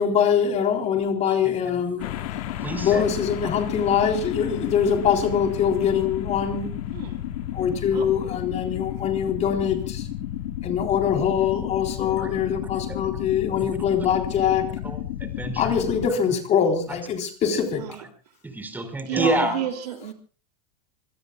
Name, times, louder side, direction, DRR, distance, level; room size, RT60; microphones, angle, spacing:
voice 1, 0.0-2.1 2.8-6.7 7.5-10.1 10.6-14.7 15.6-17.9 19.1-19.6, left 7 dB, 35° left, 4.0 m, -23 dB
sound 1, 2.0-16.1, left 12 dB, 65° left, 2.2 m, -32 dB
voice 2, 2.5-3.0 12.2-12.3 12.9-13.0 13.6-13.7 14.8-15.7 18.4-19.6, right 2 dB, 10° right, 4.9 m, -28 dB
voice 3, 19.1-20.1, right 11 dB, 80° right, 2.9 m, -31 dB
26.0 x 21.5 x 2.4 m
supercardioid pair, 125°, 20 cm